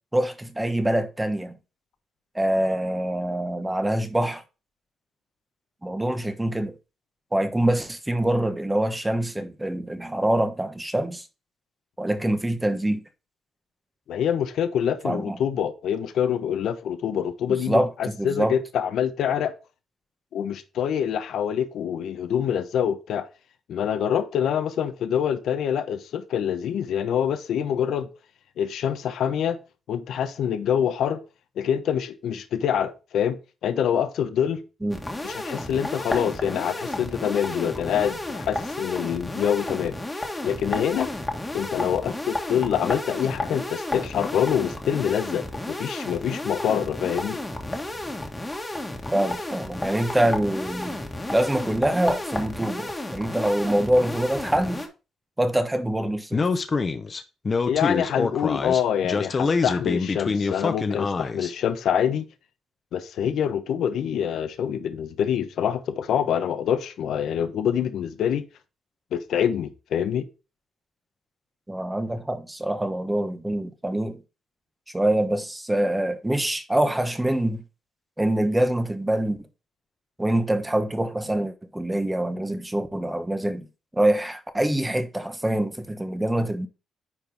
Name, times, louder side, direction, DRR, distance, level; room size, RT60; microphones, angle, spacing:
voice 1, 0.1-1.6 2.3-4.4 5.8-6.7 7.3-11.3 12.0-13.0 15.0-15.4 17.5-18.6 34.8-35.1 49.1-51.0 51.3-54.8 55.4-56.4 71.7-74.2 74.9-77.6 78.2-79.4 80.2-83.7 83.9-86.7, right 1 dB, 10° right, 1.0 m, -25 dB
voice 2, 14.1-19.5 20.3-23.2 23.7-28.1 28.6-29.6 29.9-31.2 31.6-34.6 35.2-40.0 40.4-41.1 41.5-47.4 57.7-62.3 62.9-68.4 69.1-70.3, left 8 dB, 75° left, 1.0 m, -25 dB
sound 1, 34.9-54.9, left 1 dB, 15° left, 1.6 m, -32 dB
Speech, 56.3-61.5, left 4 dB, 35° left, 0.9 m, -25 dB
9.8 x 4.5 x 3.4 m
cardioid pair, 100°, 0 cm